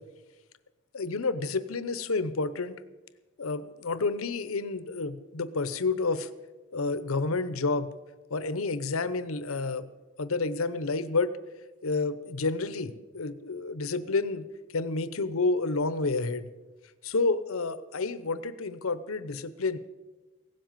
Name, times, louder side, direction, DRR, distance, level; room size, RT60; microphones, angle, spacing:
voice 1, 0.9-2.8 3.4-6.3 6.7-7.9 8.3-9.9 10.2-11.3 11.8-14.5 14.7-16.5 17.0-19.8, left 3 dB, 85° left, 14 dB, 0.8 m, -29 dB
16.5 x 7.7 x 9.0 m, 1.2 s
head